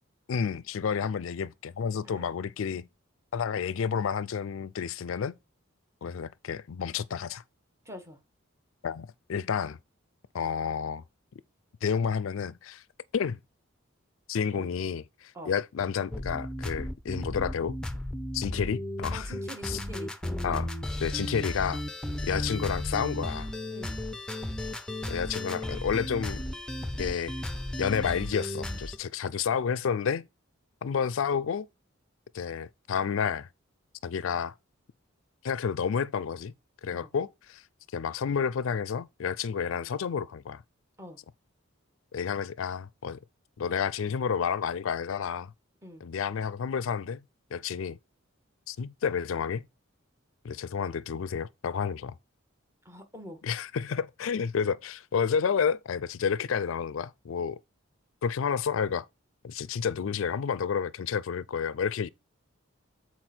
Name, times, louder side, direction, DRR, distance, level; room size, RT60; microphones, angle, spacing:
voice 1, 0.3-2.9 3.3-5.4 6.0-7.4 8.8-9.8 10.3-11.0 11.8-12.8 13.1-13.4 14.3-17.8 18.3-19.3 19.6-19.8 20.4-20.7 21.0-21.8 22.2-23.5 25.1-26.4 27.0-27.3 27.8-30.3 30.8-31.7 32.3-33.5 34.0-34.5 35.4-36.5 36.8-37.6 37.9-40.6 42.1-43.2 43.6-45.5 46.0-47.2 47.5-48.0 48.7-49.6 50.4-52.1 53.4-57.6 58.2-59.1 59.4-62.1, left 6 dB, 75° left, 0.4 m, -30 dB
voice 2, 7.8-8.2 14.5-14.7 15.3-15.5 19.1-20.1 23.7-24.0 36.9-37.1 41.0-41.2 45.8-46.1 52.8-53.4, equal, 15° right, 1.6 m, -45 dB
sound 1, 16.1-29.0, left 1 dB, 5° left, 0.7 m, -34 dB
8.0 x 4.5 x 4.4 m
head